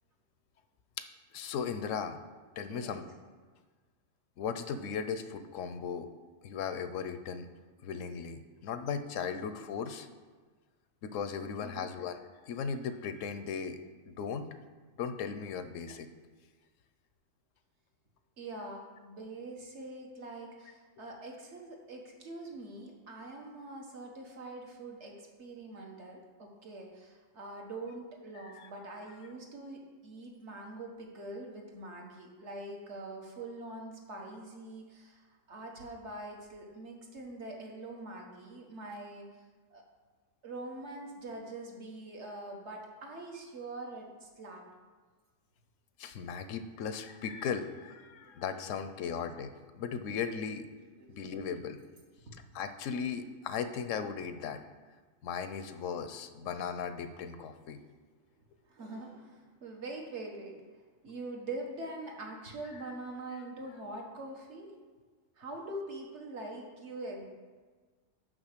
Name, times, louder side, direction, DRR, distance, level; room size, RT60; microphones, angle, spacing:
voice 1, 1.3-2.2 2.6-3.0 4.4-6.1 6.4-7.5 7.8-10.1 11.0-12.2 12.4-13.8 14.1-14.5 15.0-16.1 28.4-28.7 46.0-50.7 51.1-51.8 52.5-54.6 55.2-57.8, left 6 dB, 75° left, 10 dB, 1.0 m, -37 dB
voice 2, 2.7-3.0 11.6-11.9 18.4-39.3 39.7-39.8 40.4-44.6 48.2-48.3 48.7-48.9 51.0-51.2 58.6-60.6 61.0-64.7 65.4-67.3, right 2 dB, 60° right, 1 dB, 1.5 m, -44 dB
6.2 x 5.5 x 6.6 m, 1.4 s
omnidirectional pair, 1.4 m